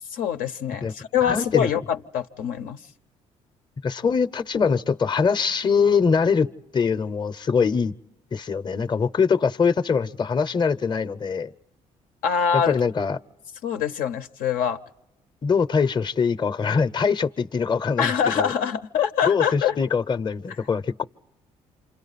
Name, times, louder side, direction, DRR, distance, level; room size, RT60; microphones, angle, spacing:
voice 1, 0.1-2.8 12.2-12.8 13.6-14.8 18.0-19.8, left 8 dB, 80° left, 6 dB, 0.7 m, -24 dB
voice 2, 1.2-1.7 3.8-7.9 8.3-11.5 12.5-13.2 15.4-18.5 19.3-21.0, left 5 dB, 30° left, 13 dB, 0.7 m, -23 dB
28.5 x 26.5 x 4.1 m, 0.94 s
supercardioid pair, 70°, 14 cm